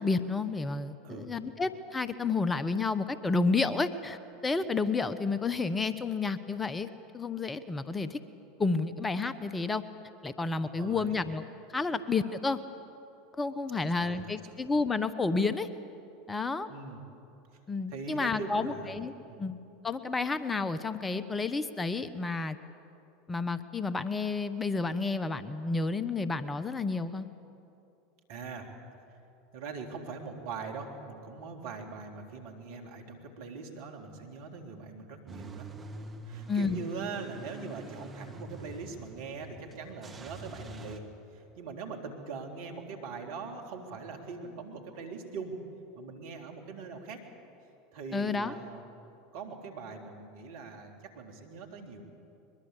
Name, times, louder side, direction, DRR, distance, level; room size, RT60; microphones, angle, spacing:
voice 1, 0.0-6.9 7.1-8.2 8.6-9.8 10.2-11.4 11.7-12.6 13.4-15.7 16.3-16.7 17.7-19.1 19.4-19.6 19.8-22.6 23.3-27.3 36.5-36.8 48.1-48.5, left 4 dB, 15° left, 13 dB, 1.1 m, -30 dB
voice 2, 10.6-11.1 13.7-14.5 16.7-17.0 17.9-18.9 19.3-19.4 28.3-28.7 29.5-35.7 36.3-41.1 41.3-45.5 46.0-47.2 47.9-48.8 49.3-52.0, right 4 dB, 65° right, 3 dB, 3.4 m, -42 dB
Car / Engine starting / Idling, 35.3-41.0, right 2 dB, 25° right, 2.3 m, -46 dB
22.5 x 21.5 x 8.3 m, 2.7 s
hypercardioid pair, 80°, 0 cm